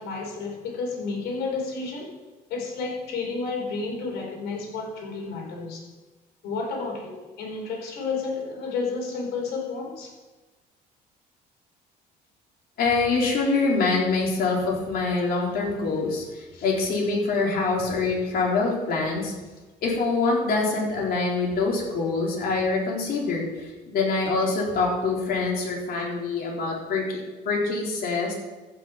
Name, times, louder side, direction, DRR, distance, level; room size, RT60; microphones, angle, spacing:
voice 1, 0.0-2.1 2.5-5.8 6.4-10.1 16.5-16.6, left 4 dB, 80° left, 0 dB, 4.3 m, -31 dB
voice 2, 12.8-19.3 19.8-28.3, left 3 dB, 65° left, -2 dB, 4.1 m, -25 dB
14.5 x 6.3 x 5.9 m, 1.2 s
cardioid pair, 110°, 17 cm